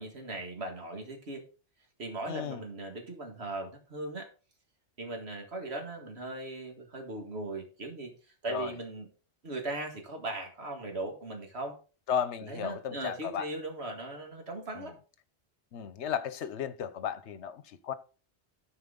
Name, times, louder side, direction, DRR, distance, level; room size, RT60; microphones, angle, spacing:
voice 1, 0.0-1.4 2.0-4.3 5.0-8.1 8.4-9.1 9.4-11.8 12.5-14.9, right 2 dB, 65° right, 2.1 m, -38 dB
voice 2, 2.3-2.6 8.5-8.7 12.1-13.5 14.7-14.9 15.7-17.9, left 8 dB, 75° left, 1.1 m, -34 dB
13.0 x 4.9 x 3.8 m
omnidirectional pair, 1.2 m